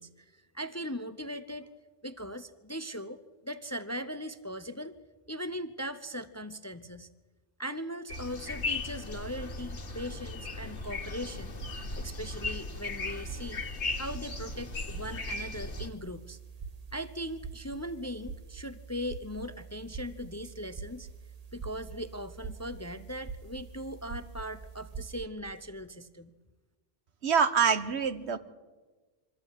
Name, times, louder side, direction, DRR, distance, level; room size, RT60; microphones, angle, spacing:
voice 1, 0.0-1.7 2.0-4.9 5.3-7.1 7.6-11.5 11.9-13.6 14.0-16.4 16.9-21.1 21.5-26.3, equal, 20° left, 12 dB, 0.6 m, -39 dB
sound 1, 8.1-15.9, left 3 dB, 90° left, 2.0 m, -37 dB
sound 2, 11.2-25.2, right 5 dB, 35° right, 1.0 m, -45 dB
voice 2, 27.2-28.4, right 6 dB, 75° right, 12 dB, 1.4 m, -25 dB
24.0 x 14.5 x 9.8 m, 1.3 s
omnidirectional pair, 1.1 m